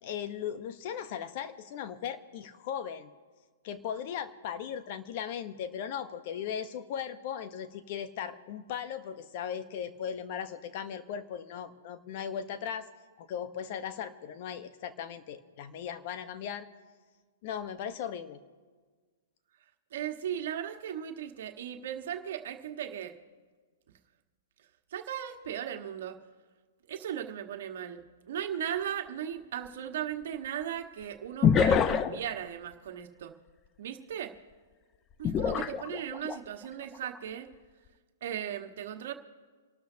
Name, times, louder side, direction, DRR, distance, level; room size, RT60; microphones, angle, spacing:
voice 1, 0.0-3.1 3.6-12.9 13.2-16.7 17.4-18.4, left 8 dB, 50° left, 10 dB, 1.1 m, -38 dB
voice 2, 19.9-23.1 24.9-26.2 26.9-33.3 33.8-34.3 35.2-37.5 38.2-39.1, right 10 dB, 65° right, 5 dB, 1.5 m, -37 dB
sound 1, 28.5-28.6 31.4-32.3 35.2-36.4 36.9-37.2, left 7 dB, 25° left, 0.7 m, -25 dB
27.5 x 12.5 x 2.9 m, 1.5 s
hypercardioid pair, 120°, 0 cm